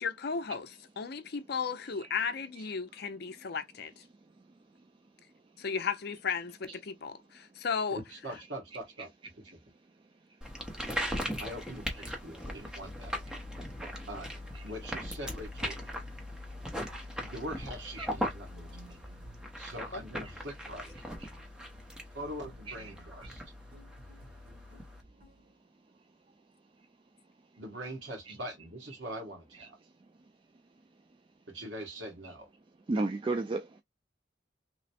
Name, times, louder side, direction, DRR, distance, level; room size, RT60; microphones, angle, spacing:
voice 1, 0.0-4.0 5.6-8.0 19.9-20.0, left 5 dB, 55° left, 0.5 m, -35 dB
voice 2, 7.9-9.1 11.4-13.2 14.1-14.3 14.6-15.8 17.2-19.0 19.6-21.0 22.1-23.4 27.6-29.8 31.5-32.5, right 1 dB, 70° right, 1.3 m, -42 dB
sound 1, 10.4-25.0, equal, 5° right, 0.7 m, -39 dB
sound 2, 17.9-25.6, right 1 dB, 45° right, 1.2 m, -57 dB
voice 3, 32.9-33.8, right 2 dB, 25° right, 0.3 m, -32 dB
3.1 x 2.1 x 4.1 m
head